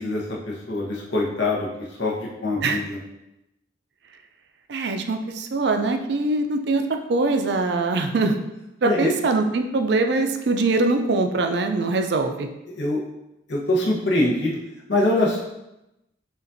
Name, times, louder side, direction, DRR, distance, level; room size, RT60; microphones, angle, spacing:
voice 1, 0.0-3.0 8.8-9.1 12.7-13.0 13.5-14.6 14.9-15.4, left 2 dB, 70° left, -3 dB, 0.9 m, -24 dB
voice 2, 4.7-6.8 7.1-8.3 8.8-12.5, right 3 dB, 60° right, 5 dB, 0.4 m, -22 dB
6.7 x 2.5 x 2.6 m, 0.91 s
head